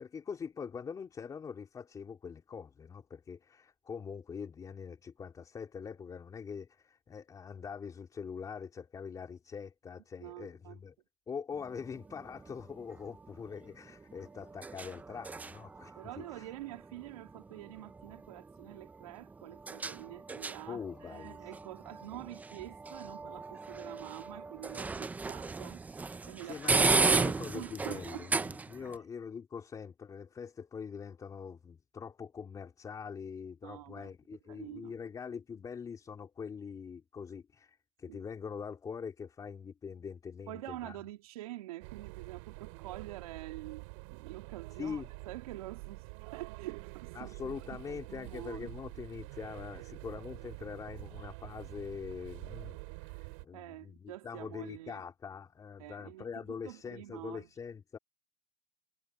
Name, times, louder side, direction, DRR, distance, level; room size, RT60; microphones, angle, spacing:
voice 1, 0.0-10.9 11.3-16.5 20.7-21.4 26.4-41.0 44.8-45.1 47.1-58.0, left 6 dB, 20° left, 4.0 m, -43 dB
voice 2, 10.2-10.8 16.0-28.3 28.7-28.9 33.6-34.1 34.5-34.9 38.1-38.2 40.5-47.5 47.9-48.7 49.7-49.9 53.5-55.0 55.8-56.3 56.6-57.5, right 16 dB, 80° right, 2.7 m, -46 dB
sound 1, 11.5-29.0, right 4 dB, 10° right, 0.5 m, -36 dB
sound 2, 41.8-53.5, right 32 dB, 60° right, 4.5 m, -47 dB
supercardioid pair, 140°, 18 cm